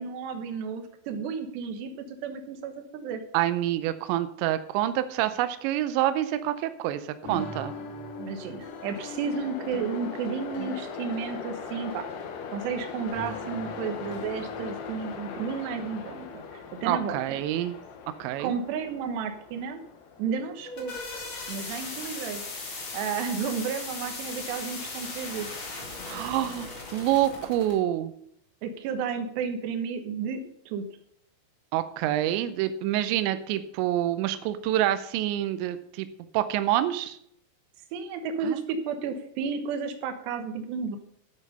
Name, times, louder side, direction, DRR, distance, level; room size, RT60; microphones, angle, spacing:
voice 1, 0.0-3.2 8.2-12.1 12.5-17.4 18.4-19.8 20.2-20.9 21.5-22.4 22.9-25.5 28.6-30.9 37.9-41.0, right 6 dB, 70° right, 6 dB, 3.0 m, -32 dB
voice 2, 3.3-7.7 16.9-17.8 18.2-18.6 26.1-28.1 31.7-36.1 36.3-37.2 38.4-38.6, right 13 dB, 90° right, 11 dB, 2.5 m, -27 dB
sound 1, 7.2-18.7, left 3 dB, 75° left, 4.1 m, -43 dB
Train, 7.5-24.6, left 6 dB, 90° left, 4.1 m, -42 dB
sound 2, 20.5-27.8, left 3 dB, 50° left, 1.4 m, -38 dB
12.0 x 8.2 x 5.4 m, 0.71 s
omnidirectional pair, 5.9 m